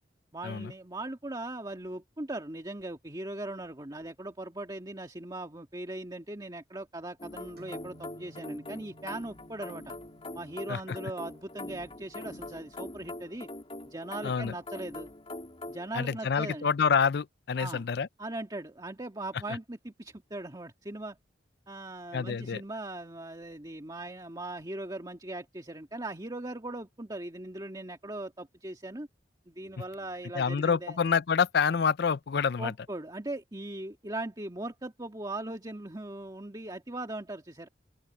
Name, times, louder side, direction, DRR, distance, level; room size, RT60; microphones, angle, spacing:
voice 1, 0.3-9.9 10.3-13.5 13.9-15.1 15.7-16.7 17.6-17.8 18.2-21.2 21.7-29.1 29.5-31.0 32.6-37.7, right 2 dB, 20° right, 1.8 m, -39 dB
sound 1, 7.2-15.9, left 2 dB, 30° left, 2.9 m, -43 dB
sound 2, 7.6-15.1, equal, 60° right, 8.0 m, -58 dB
voice 2, 14.2-14.5 15.9-18.1 22.1-22.6 30.3-32.7, left 6 dB, 65° left, 0.5 m, -27 dB
open air
head